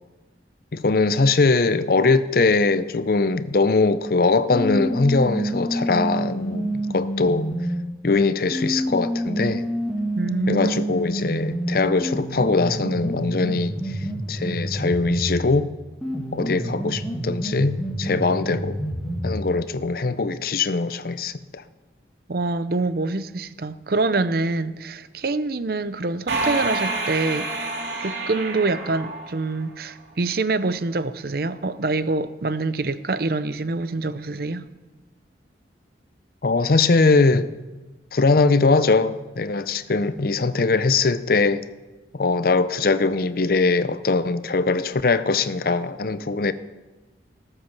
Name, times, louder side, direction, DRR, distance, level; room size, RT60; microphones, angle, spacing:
voice 1, 0.7-7.5 8.0-9.6 10.5-14.0 14.3-15.7 16.3-18.8 19.2-21.6 36.4-37.5 38.1-41.6 42.1-46.5, left 3 dB, 55° left, 0.6 m, -21 dB
sound 1, 4.5-7.8 8.5-15.5 16.0-19.5, equal, 5° left, 2.2 m, -28 dB
voice 2, 10.1-10.8 22.3-27.5 28.0-34.6, right 3 dB, 55° right, 0.6 m, -25 dB
sound 2, 26.3-29.9, right 3 dB, 80° right, 2.4 m, -28 dB
19.5 x 7.9 x 6.0 m
head